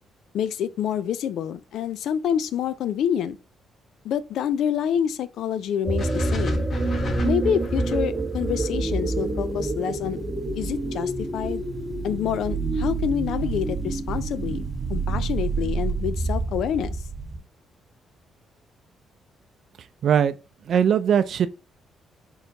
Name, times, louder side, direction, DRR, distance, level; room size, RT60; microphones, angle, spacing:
voice 1, 0.3-3.4 4.0-6.7 7.2-10.2 10.6-11.6 12.0-16.9, left 9 dB, 75° left, 0.4 m, -27 dB
sound 1, 5.8-17.4, right 3 dB, 25° right, 1.5 m, -27 dB
washer machine with efffect, 6.0-10.2, left 1 dB, 50° left, 0.9 m, -36 dB
voice 2, 20.0-20.3 20.7-21.5, right 8 dB, 60° right, 0.4 m, -20 dB
4.3 x 3.9 x 2.7 m
cardioid pair, 90°, 0 cm